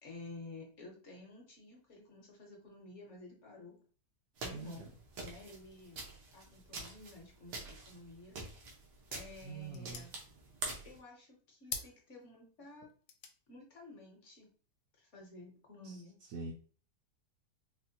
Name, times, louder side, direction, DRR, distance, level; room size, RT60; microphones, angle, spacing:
voice 1, 0.0-3.8 4.4-4.9 5.2-6.0 6.3-8.4 9.1-10.1 10.8-12.9 13.5-14.5 15.0-16.2, left 2 dB, 55° left, 0 dB, 1.0 m, -52 dB
sound 1, 4.4-11.0, right 3 dB, 85° right, 1.5 m, -46 dB
voice 2, 4.5-4.9 9.4-10.1 15.8-15.9 16.3-16.5, right 4 dB, 65° right, -1 dB, 0.9 m, -44 dB
sound 2, 11.6-15.5, left 6 dB, 85° left, 1.2 m, -51 dB
4.2 x 2.1 x 2.7 m, 0.42 s
omnidirectional pair, 1.8 m